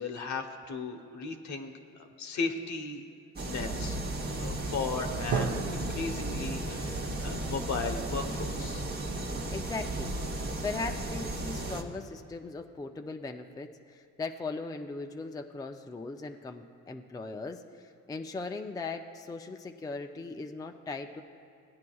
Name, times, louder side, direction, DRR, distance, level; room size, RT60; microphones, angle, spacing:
voice 1, 0.0-1.7 2.2-3.0 3.4-4.0 4.3-8.8, left 4 dB, 70° left, 5 dB, 1.0 m, -36 dB
sound 1, 3.4-11.8, right 1 dB, 30° right, 1.0 m, -35 dB
Drum, 5.3-9.0, right 5 dB, 90° right, 0.8 m, -37 dB
voice 2, 9.5-10.1 10.6-21.2, left 3 dB, 10° left, 5 dB, 0.4 m, -39 dB
17.5 x 9.5 x 2.3 m, 2.6 s
cardioid pair, 90°, 30 cm